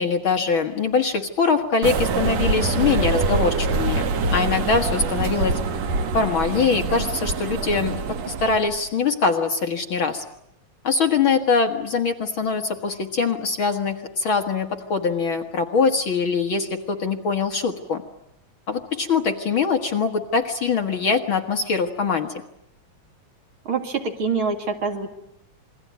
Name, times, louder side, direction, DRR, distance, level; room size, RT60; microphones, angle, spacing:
voice 1, 0.0-5.6 6.1-7.9 8.3-10.2 10.8-18.0 18.7-22.3, left 5 dB, 50° left, 5 dB, 2.0 m, -23 dB
sound 1, 1.8-8.8, right 4 dB, 65° right, 2.6 m, -25 dB
voice 2, 23.6-25.1, right 4 dB, 45° right, 5 dB, 2.9 m, -25 dB
28.0 x 22.0 x 9.4 m, 0.76 s
omnidirectional pair, 3.3 m